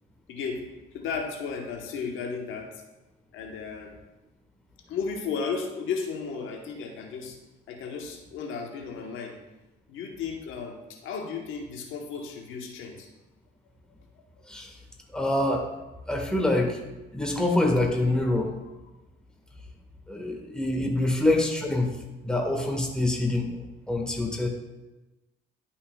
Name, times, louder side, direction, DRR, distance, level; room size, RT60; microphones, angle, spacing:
voice 1, 0.3-0.6 0.9-2.7 3.3-3.9 4.9-7.4 7.7-9.3 9.9-13.1 21.0-21.1, left 5 dB, 85° left, 2 dB, 1.1 m, -34 dB
voice 2, 15.1-15.7 16.1-16.8 17.1-18.5 20.1-22.0 22.2-23.5 23.9-24.5, left 1 dB, 5° left, 0 dB, 1.5 m, -25 dB
11.0 x 5.7 x 2.3 m, 1.0 s
cardioid pair, 90°, 20 cm